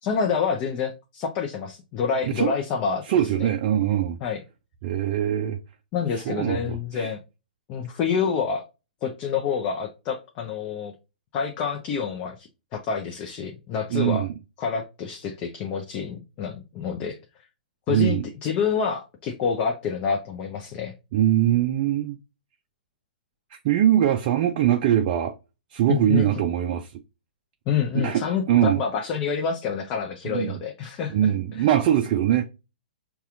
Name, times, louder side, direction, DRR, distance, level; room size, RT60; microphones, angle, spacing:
voice 1, 0.0-3.0 3.4-3.5 4.2-4.4 5.9-7.2 7.7-8.7 9.0-10.9 11.3-14.3 14.6-17.2 17.9-20.9 25.9-26.4 27.7-31.7, left 6 dB, 30° left, 0.6 m, -28 dB
voice 2, 3.1-4.2 4.8-5.6 6.1-7.1 13.9-14.3 17.9-18.3 21.1-22.2 23.5-25.3 25.7-26.9 27.9-28.8 30.3-30.6 31.1-32.4, right 11 dB, 45° right, 0.4 m, -22 dB
5.5 x 2.3 x 2.4 m
figure-of-eight pair, 120°, 5 cm